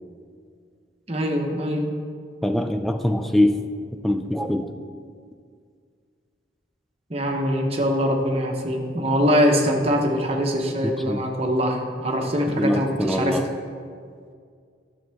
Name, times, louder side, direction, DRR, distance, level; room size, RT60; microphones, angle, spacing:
voice 1, 1.1-1.9 7.1-13.4, equal, 30° right, 1 dB, 0.9 m, -23 dB
voice 2, 2.4-3.6 4.0-4.7 10.8-11.2 12.5-13.4, left 1 dB, ahead, 6 dB, 0.3 m, -23 dB
11.0 x 7.1 x 3.5 m, 2.1 s
head